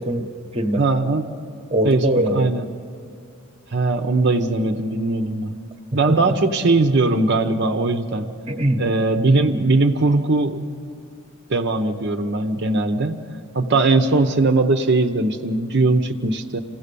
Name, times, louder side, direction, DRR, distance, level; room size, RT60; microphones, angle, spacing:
voice 1, 0.0-0.8 1.7-2.5 6.1-6.3 8.5-8.8, right 1 dB, 25° right, 6 dB, 1.0 m, -22 dB
voice 2, 0.8-1.3 1.8-2.0 2.3-2.6 3.7-5.5 5.9-8.3 8.8-10.6 11.5-13.2 13.5-16.6, right 3 dB, 55° right, 6 dB, 0.8 m, -19 dB
26.5 x 16.5 x 6.8 m, 2.4 s
head